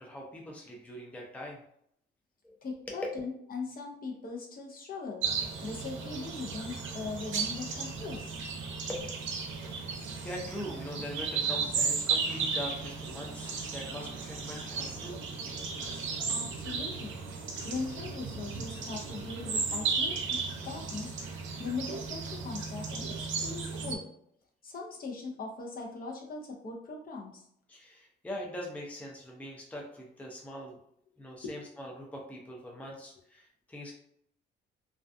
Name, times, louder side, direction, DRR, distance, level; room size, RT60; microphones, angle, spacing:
voice 1, 0.0-1.6 2.4-2.6 2.9-3.0 8.9-9.1 9.6-15.2 27.7-30.8 31.2-33.9, equal, 5° left, -1 dB, 0.5 m, -42 dB
voice 2, 2.6-5.2 5.6-8.3 16.3-17.2 17.6-20.4 20.6-24.1 24.6-27.4 31.4-31.6, left 4 dB, 45° left, -1 dB, 0.6 m, -40 dB
sound 1, 5.2-24.0, right 5 dB, 75° right, 0.5 m, -35 dB
2.3 x 2.3 x 2.5 m, 0.70 s
cardioid pair, 90°, 20 cm